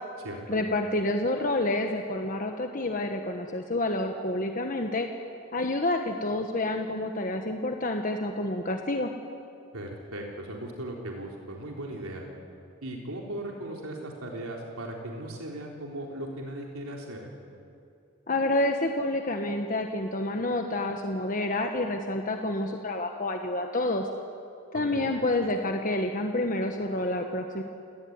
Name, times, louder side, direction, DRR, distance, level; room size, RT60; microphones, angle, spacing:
voice 1, 0.5-5.1 5.5-9.1 18.3-24.1 24.7-27.6, left 2 dB, 40° left, 4 dB, 1.3 m, -28 dB
voice 2, 9.7-12.2 12.8-17.3 24.9-25.1, right 1 dB, 85° right, 0 dB, 3.8 m, -37 dB
29.0 x 18.5 x 9.6 m, 2.6 s
head